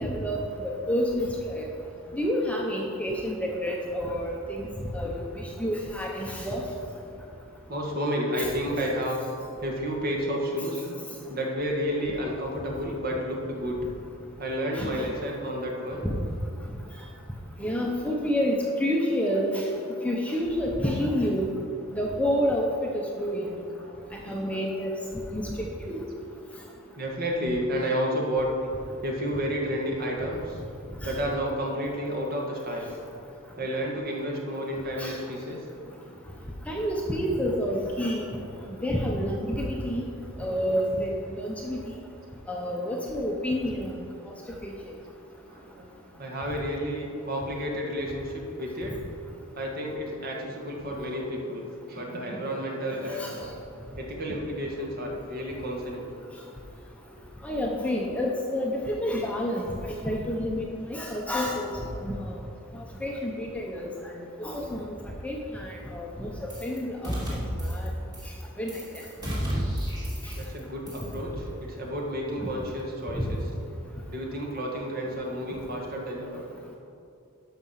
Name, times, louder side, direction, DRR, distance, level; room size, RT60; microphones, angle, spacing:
voice 1, 0.0-1.6 2.1-4.7 4.9-6.6 14.7-15.0 16.0-16.1 17.6-19.7 20.0-21.5 21.9-22.7 22.9-23.5 24.1-25.0 25.3-25.5 25.9-26.0 31.0-31.1 35.0-35.1 36.7-38.3 38.8-40.0 40.4-41.8 42.5-43.9 53.2-53.3 57.4-61.7 62.0-62.3 62.7-64.8 65.2-66.3 66.6-67.9 68.6-68.8 73.2-73.3, equal, 5° left, -1 dB, 0.8 m, -29 dB
voice 2, 2.4-2.8 7.7-9.2 9.6-10.8 11.3-13.8 14.4-16.1 23.3-23.5 23.8-23.9 27.0-28.5 29.0-30.6 31.0-32.9 33.6-35.7 38.5-38.6 45.5-49.0 49.6-53.5 54.0-56.1 70.3-73.5 74.1-76.4, equal, 45° right, -1 dB, 1.8 m, -31 dB
sound 1, 66.5-66.8 67.0-67.9 68.1-68.4 68.7-70.6 70.9-71.1, equal, 20° right, 2.7 m, -31 dB
12.0 x 6.0 x 5.7 m, 2.6 s
head